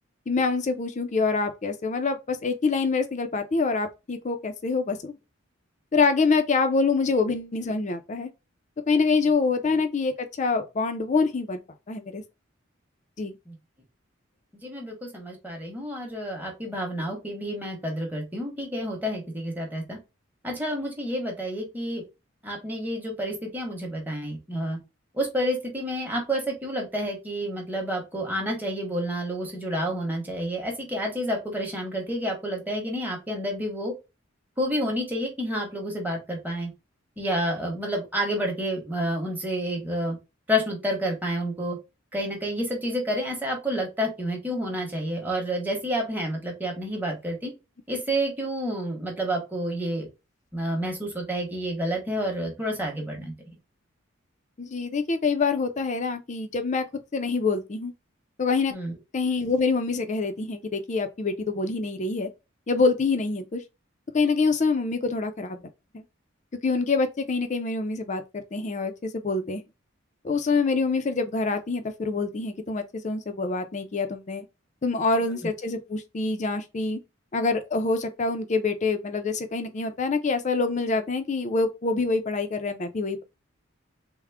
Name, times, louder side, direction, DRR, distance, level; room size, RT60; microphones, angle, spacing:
voice 1, 0.3-5.2 5.9-8.3 8.9-11.6 11.9-12.2 13.2-13.4 54.6-56.8 57.1-57.9 58.4-58.7 59.1-62.3 62.7-63.6 64.1-65.6 65.9-66.0 66.6-69.6 70.2-74.4 74.8-77.0 77.3-83.2, left 4 dB, 35° left, 0.4 m, -26 dB
voice 2, 14.6-20.0 20.4-22.0 22.4-24.8 25.1-33.9 34.6-36.7 37.2-40.2 40.5-41.8 42.1-47.5 47.9-50.1 50.5-53.3 58.7-58.9 75.3-75.5, equal, 10° right, 0.9 m, -29 dB
3.5 x 2.0 x 3.3 m
head